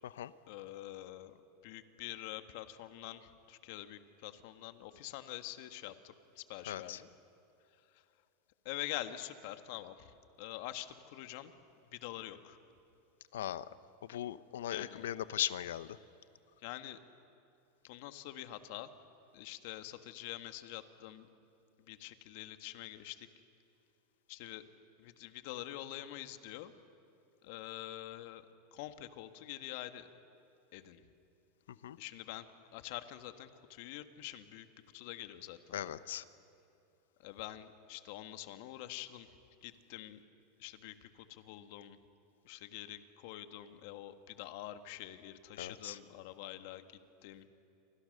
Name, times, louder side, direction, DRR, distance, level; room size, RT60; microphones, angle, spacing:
voice 1, 0.5-7.1 7.7-8.0 8.6-11.5 11.9-12.6 14.7-15.1 16.6-17.0 17.9-18.9 19.3-21.3 21.8-23.3 24.3-24.6 25.0-26.7 27.4-28.4 28.7-30.1 30.7-31.0 32.0-32.5 32.7-34.7 34.9-35.8 37.2-39.3 39.6-40.2 40.6-42.0 42.4-47.5, left 14 dB, 60° left, 9 dB, 1.6 m, -46 dB
voice 2, 6.7-7.0 13.3-13.6 14.0-16.0 31.8-32.0 35.7-36.2 45.6-46.0, left 11 dB, 85° left, 15 dB, 0.9 m, -38 dB
29.0 x 25.0 x 6.7 m, 2.8 s
supercardioid pair, 130°, 0 cm